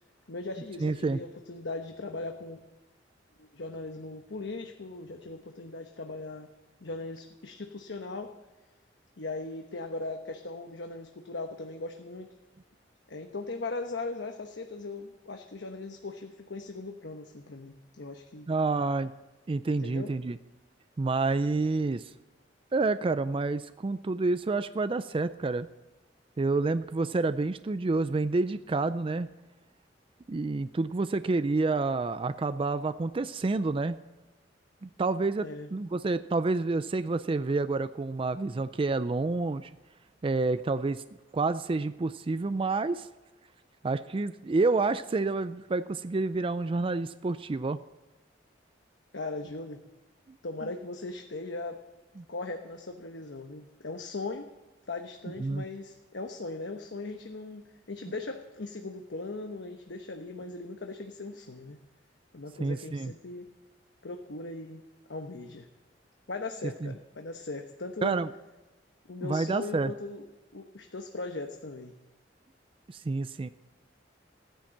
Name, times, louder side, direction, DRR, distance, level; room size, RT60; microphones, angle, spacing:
voice 1, 0.3-2.6 3.4-6.5 6.8-8.3 9.2-12.3 13.1-18.5 19.8-20.1 35.4-35.7 49.1-49.8 50.4-51.8 52.3-54.5 54.9-61.8 62.3-63.5 64.0-64.8 65.1-65.7 66.3-68.2 69.1-70.2 70.5-71.9, left 3 dB, 75° left, 4 dB, 1.0 m, -39 dB
voice 2, 0.8-1.2 18.5-19.1 19.5-20.4 21.0-22.0 22.7-25.7 26.4-29.3 30.3-34.0 34.8-39.7 40.2-41.0 41.3-43.1 43.8-47.8 52.2-52.3 55.4-55.6 62.6-63.1 66.8-66.9 68.0-68.3 69.2-69.9 72.9-73.5, right 3 dB, 30° right, 13 dB, 0.4 m, -28 dB
15.5 x 10.5 x 7.4 m, 1.1 s
head